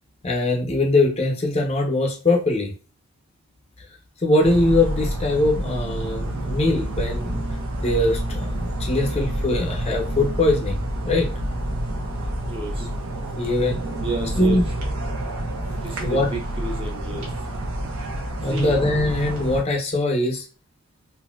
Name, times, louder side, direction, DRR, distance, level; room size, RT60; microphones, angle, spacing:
voice 1, 0.2-2.7 4.2-7.4 7.8-11.3 13.3-13.8 14.4-14.6 16.0-16.3 18.4-20.5, left 2 dB, 30° left, 1 dB, 0.6 m, -22 dB
sound 1, 4.4-19.6, right 1 dB, 75° right, 1.0 m, -28 dB
voice 2, 12.4-12.9 14.0-14.6 15.8-17.3 18.4-18.8, right 2 dB, 25° right, 1 dB, 0.8 m, -31 dB
3.8 x 2.7 x 2.3 m, 0.35 s
head